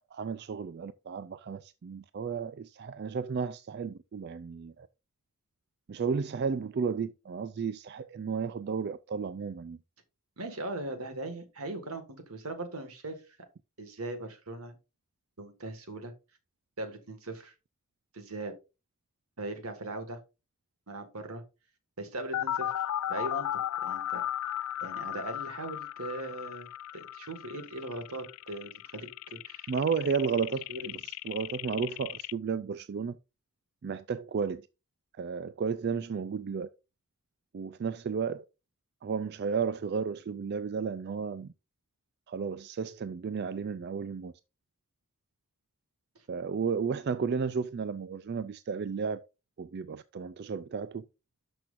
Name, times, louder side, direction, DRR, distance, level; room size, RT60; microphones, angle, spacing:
voice 1, 0.1-4.9 5.9-9.8 29.7-30.7 31.0-33.2 33.8-34.6 35.2-36.7 37.5-38.4 39.0-41.5 42.3-44.3 46.3-49.3 49.6-51.0, right 5 dB, 45° right, 0.3 m, -33 dB
voice 2, 10.4-13.2 13.8-14.8 15.4-16.1 16.8-17.5 18.1-18.5 19.4-20.2 20.9-21.4 22.0-22.8 23.1-23.5 23.8-24.2 24.8-29.7 30.7-30.9, right 2 dB, 80° right, 1.8 m, -39 dB
sound 1, 22.3-32.3, left 12 dB, 80° left, 0.3 m, -36 dB
12.0 x 6.1 x 2.5 m
head